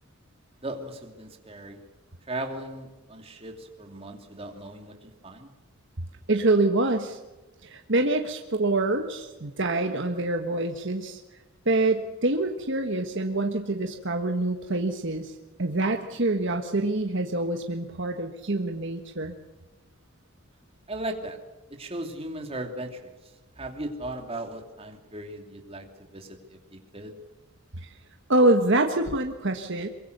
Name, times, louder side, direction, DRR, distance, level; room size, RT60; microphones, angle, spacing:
voice 1, 0.6-1.8 2.3-5.5 20.9-21.4 21.8-23.1 23.6-25.9 26.1-27.2, right 1 dB, 25° right, 3 dB, 2.8 m, -37 dB
voice 2, 6.3-7.2 7.6-11.2 11.6-19.3 27.8-27.9 28.3-29.9, right 2 dB, 55° right, 4 dB, 1.4 m, -26 dB
23.5 x 23.5 x 6.7 m, 1.1 s
head